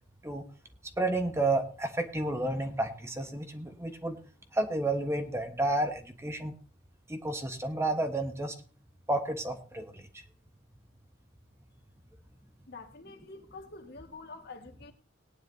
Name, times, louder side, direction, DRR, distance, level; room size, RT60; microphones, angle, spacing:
voice 1, 1.0-4.2 4.5-6.5 7.1-8.5 9.1-10.2, right 2 dB, 15° right, 1.3 m, -31 dB
voice 2, 12.7-14.9, left 3 dB, 60° left, 1.9 m, -47 dB
19.0 x 9.9 x 2.8 m
head